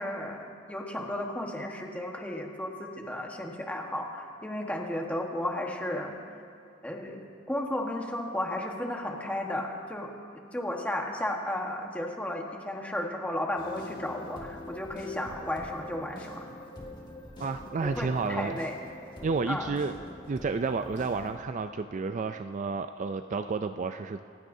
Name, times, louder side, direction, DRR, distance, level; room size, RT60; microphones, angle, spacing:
voice 1, 0.0-6.2 6.8-10.1 10.5-16.4 17.8-18.8 19.5-19.7, left 1 dB, 5° left, 1 dB, 1.3 m, -34 dB
sound 1, 13.6-21.3, left 1 dB, 25° left, 1.9 m, -44 dB
voice 2, 17.4-18.6 19.2-19.9 20.3-24.2, right 4 dB, 40° right, 8 dB, 0.4 m, -31 dB
28.0 x 15.5 x 2.7 m, 2.5 s
head